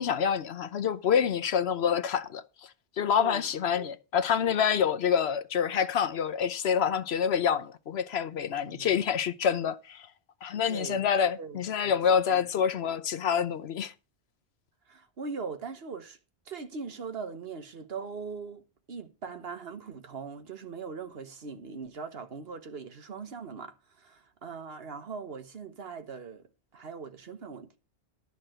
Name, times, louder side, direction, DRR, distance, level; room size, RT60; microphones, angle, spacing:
voice 1, 0.0-2.7 3.0-10.1 10.4-13.9, left 7 dB, 75° left, 1.0 m, -27 dB
voice 2, 10.7-11.0 11.4-12.0 12.3-12.5 14.9-16.2 16.5-18.6 18.9-27.8, right 5 dB, 65° right, 1.3 m, -40 dB
12.0 x 4.0 x 7.6 m
omnidirectional pair, 1.1 m